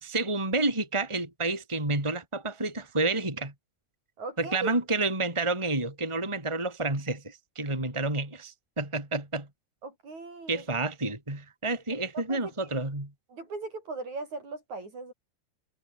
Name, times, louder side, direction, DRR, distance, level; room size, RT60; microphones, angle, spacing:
voice 1, 0.0-3.5 4.4-9.5 10.5-13.1, right 2 dB, 10° right, 3.8 m, -29 dB
voice 2, 4.2-4.7 9.8-10.9 11.9-12.7 13.3-15.1, right 3 dB, 55° right, 8.6 m, -39 dB
omnidirectional pair, 3.9 m